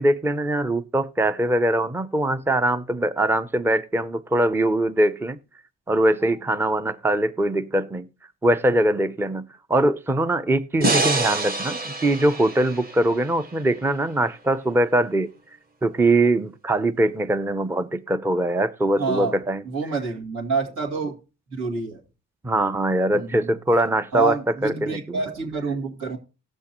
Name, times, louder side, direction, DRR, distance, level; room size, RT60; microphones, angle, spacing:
voice 1, 0.0-5.4 5.9-8.1 8.4-15.3 15.8-19.6 22.4-24.4 24.6-25.2, right 1 dB, 10° right, 0.5 m, -22 dB
sound 1, 10.8-14.0, right 2 dB, 30° right, 1.3 m, -26 dB
voice 2, 19.0-19.4 19.6-21.2 21.5-22.0 23.1-23.6 24.1-26.2, right 4 dB, 80° right, 2.6 m, -27 dB
18.0 x 6.3 x 3.0 m
cardioid pair, 90°, 30 cm